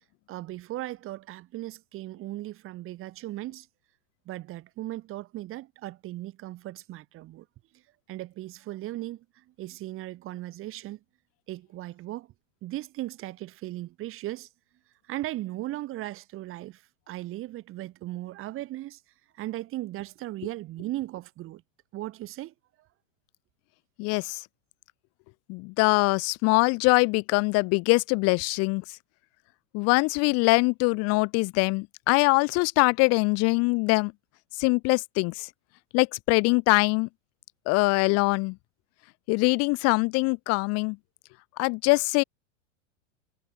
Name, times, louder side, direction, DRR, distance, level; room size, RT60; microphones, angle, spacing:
voice 1, 0.3-3.7 4.3-7.5 7.7-7.8 8.1-11.0 11.5-12.3 12.6-14.5 15.1-19.0 19.3-21.6 21.9-22.5, right 16 dB, 35° right, 3.7 m, -37 dB
voice 2, 24.0-24.4 25.5-28.8 29.7-34.1 34.6-35.5 35.9-37.1 37.7-38.6 39.3-41.0 41.6-42.2, left 28 dB, 45° left, 1.3 m, -23 dB
supercardioid pair, 130°, 36 cm